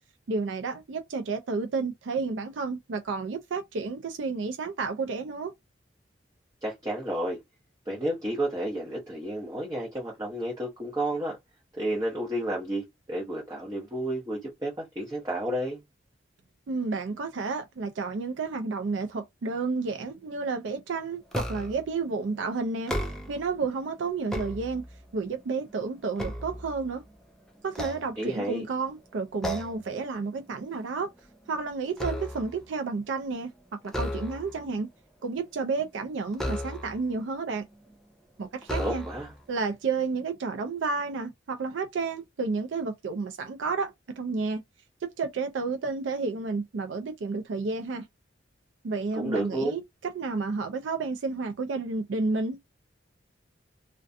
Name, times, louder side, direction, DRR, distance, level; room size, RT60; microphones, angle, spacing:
voice 1, 0.3-5.5 16.7-22.9 23.3-24.8 25.1-27.0 27.6-31.1 31.5-33.5 33.8-34.9 35.2-37.7 38.4-39.0 39.5-44.6 45.0-48.1 48.8-52.6, right 4 dB, 85° right, 0.4 m, -31 dB
voice 2, 6.6-7.4 7.9-11.4 11.7-15.8 28.2-28.6 38.8-39.3 49.2-49.7, right 1 dB, 20° right, 0.8 m, -31 dB
sound 1, 21.3-21.9 22.7-23.5 24.0-25.1 25.6-27.1 27.7-28.7 29.4-29.9 30.3-30.6 30.9-32.6 33.8-34.7 36.3-37.1 37.9-38.0 38.6-39.4, equal, 5° left, 0.3 m, -34 dB
2.4 x 2.2 x 2.5 m
head